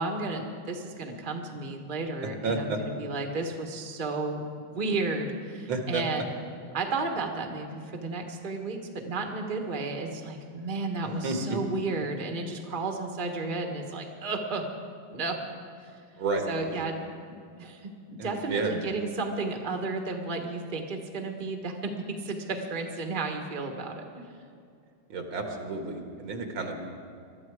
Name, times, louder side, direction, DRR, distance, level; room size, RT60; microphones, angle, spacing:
voice 1, 0.0-6.3 6.7-14.6 15.1-15.4 15.8-15.9 16.5-16.9 17.6-24.2, right 3 dB, 30° right, 3 dB, 1.3 m, -33 dB
voice 2, 2.2-2.8 5.7-6.0 11.0-11.6 16.2-16.9 18.2-18.8 25.1-26.9, right 3 dB, 80° right, 3 dB, 2.4 m, -31 dB
21.0 x 13.0 x 4.8 m, 2.3 s
omnidirectional pair, 2.2 m